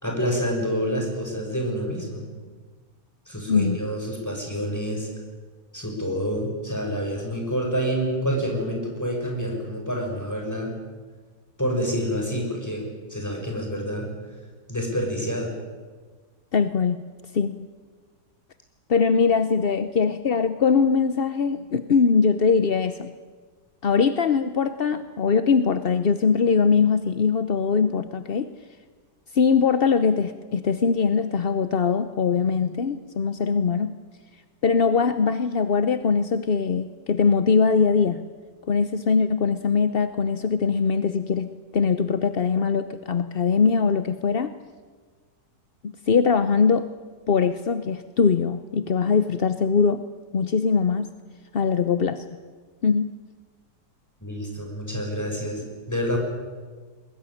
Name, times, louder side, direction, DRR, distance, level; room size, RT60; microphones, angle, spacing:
voice 1, 0.0-2.2 3.3-5.1 5.7-10.7 11.6-14.1 14.7-15.5 54.2-56.2, equal, 10° left, 2 dB, 6.2 m, -28 dB
voice 2, 16.5-17.0 17.3-17.7 18.9-23.1 23.8-28.5 29.3-33.9 34.6-38.2 38.7-44.5 45.8-46.9 47.3-50.0 50.3-51.1 51.5-52.2 52.8-53.1, left 5 dB, 45° left, 11 dB, 0.7 m, -22 dB
22.5 x 20.5 x 10.0 m, 1.4 s
omnidirectional pair, 1.9 m